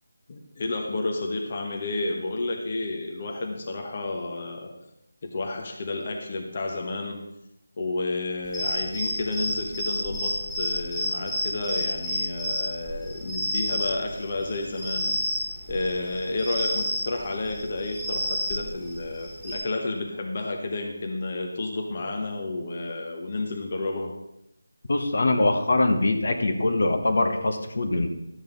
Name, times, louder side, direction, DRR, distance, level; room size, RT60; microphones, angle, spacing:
voice 1, 0.3-4.7 5.2-7.2 7.8-15.2 15.7-24.1, left 2 dB, 30° left, 2 dB, 1.0 m, -31 dB
sound 1, 8.4-19.6, equal, ahead, 2.0 m, -30 dB
voice 2, 24.9-28.1, left 2 dB, 55° left, 6 dB, 1.1 m, -23 dB
12.5 x 7.8 x 3.9 m, 0.85 s
figure-of-eight pair, 175°, 0 cm